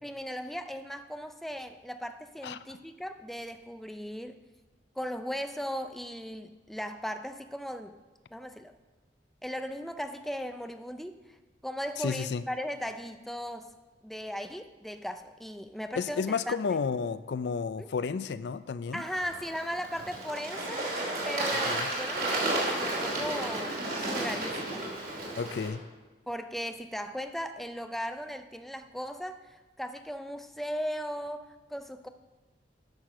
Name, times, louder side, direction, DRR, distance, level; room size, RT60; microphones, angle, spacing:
voice 1, 0.0-4.4 5.0-8.0 8.3-8.7 9.4-11.4 11.6-13.7 14.0-16.6 17.8-17.9 18.9-20.9 21.2-24.9 26.3-32.1, equal, ahead, 8 dB, 0.4 m, -37 dB
voice 2, 12.0-12.4 16.0-19.0 21.7-21.9 25.4-25.8, left 5 dB, 65° left, 14 dB, 0.4 m, -32 dB
Bird / Water, 19.0-25.7, right 2 dB, 55° right, 2.7 m, -32 dB
9.9 x 6.6 x 6.3 m, 1.2 s
head